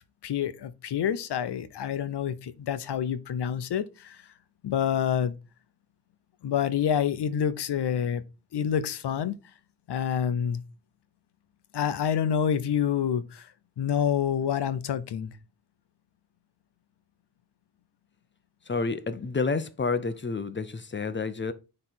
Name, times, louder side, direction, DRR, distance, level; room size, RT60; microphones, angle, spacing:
voice 1, 0.2-4.2 4.6-5.4 6.4-8.2 8.5-9.3 9.9-10.6 11.7-13.5 13.8-15.3, left 8 dB, 90° left, 0.9 m, -27 dB
voice 2, 18.7-21.5, left 4 dB, 30° left, 0.7 m, -29 dB
9.6 x 3.3 x 4.4 m
wide cardioid pair, 140°, 39 cm